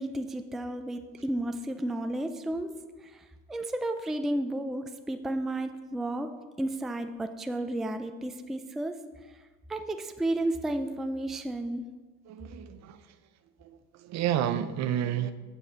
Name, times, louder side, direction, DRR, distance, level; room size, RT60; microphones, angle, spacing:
voice 1, 0.0-2.7 3.0-6.3 6.6-9.0 9.7-11.9, right 1 dB, ahead, 7 dB, 0.4 m, -32 dB
voice 2, 12.3-13.0 13.6-15.3, right 10 dB, 55° right, 11 dB, 0.7 m, -30 dB
6.9 x 6.4 x 5.5 m, 1.3 s
supercardioid pair, 105°, 32 cm